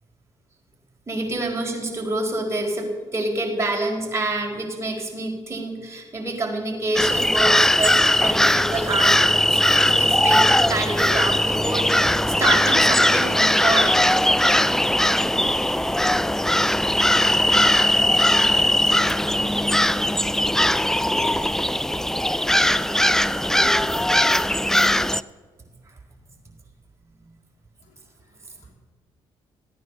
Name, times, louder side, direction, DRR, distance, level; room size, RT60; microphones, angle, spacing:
voice 1, 1.1-14.2, right 2 dB, 25° right, 0 dB, 4.8 m, -27 dB
sound 1, 7.0-25.2, left 1 dB, 5° left, 0.5 m, -19 dB
voice 2, 27.8-28.7, left 5 dB, 70° left, 1 dB, 3.1 m, -63 dB
15.5 x 9.5 x 6.8 m, 1.4 s
hypercardioid pair, 55°, 12 cm